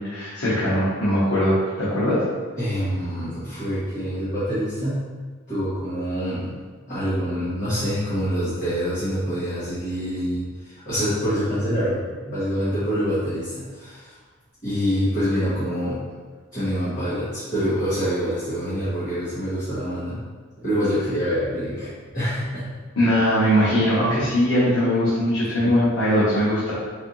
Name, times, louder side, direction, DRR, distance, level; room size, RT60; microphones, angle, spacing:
voice 1, 0.0-2.2 23.0-26.7, equal, 80° left, -10 dB, 1.0 m, -20 dB
voice 2, 2.6-5.0 5.5-6.5 6.9-12.0 12.3-14.1 14.6-16.0 16.5-20.2 20.6-22.7 24.2-24.3, equal, 40° left, -15 dB, 1.3 m, -26 dB
4.2 x 2.7 x 2.6 m, 1.4 s
head